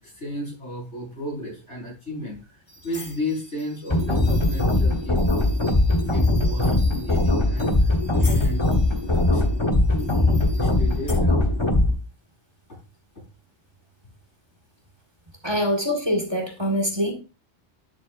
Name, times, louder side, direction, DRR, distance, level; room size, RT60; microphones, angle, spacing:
voice 1, 0.0-5.3 6.1-8.7 9.0-9.4 9.9-11.4, left 1 dB, 85° left, -2 dB, 5.6 m, -34 dB
sound 1, 2.7-11.1, left 1 dB, 55° left, 6.2 m, -44 dB
sound 2, 3.9-11.9, left 2 dB, 25° left, 1.2 m, -20 dB
voice 2, 15.4-17.1, equal, 20° right, 4 dB, 1.8 m, -24 dB
11.0 x 7.8 x 2.6 m, 0.31 s
omnidirectional pair, 1.2 m